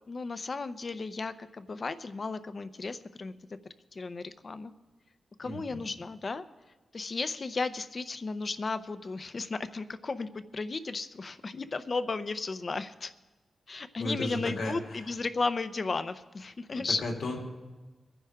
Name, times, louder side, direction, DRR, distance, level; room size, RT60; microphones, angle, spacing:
voice 1, 0.1-3.3 3.9-4.7 5.4-6.4 6.9-13.1 13.7-17.0, left 3 dB, 40° left, 12 dB, 0.7 m, -34 dB
voice 2, 5.4-5.8 14.0-15.2 16.7-17.4, left 2 dB, 80° left, 0 dB, 2.8 m, -35 dB
23.5 x 10.0 x 3.6 m, 1.2 s
wide cardioid pair, 110°, 0 cm